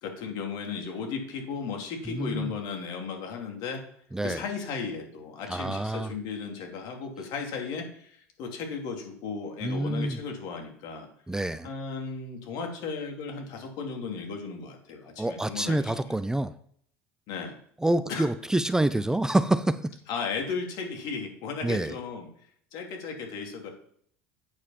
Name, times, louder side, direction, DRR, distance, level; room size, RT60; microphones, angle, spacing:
voice 1, 0.0-3.8 4.2-11.1 11.6-16.2 17.3-17.6 18.1-18.3 20.1-22.3 22.7-23.7, left 5 dB, 65° left, 3 dB, 2.6 m, -35 dB
voice 2, 2.1-2.5 4.1-4.4 5.5-6.1 9.6-10.2 11.3-11.7 15.2-16.5 17.8-20.0 21.6-21.9, right 1 dB, 10° right, 13 dB, 0.5 m, -27 dB
8.7 x 4.9 x 5.7 m, 0.63 s
hypercardioid pair, 90°, 8 cm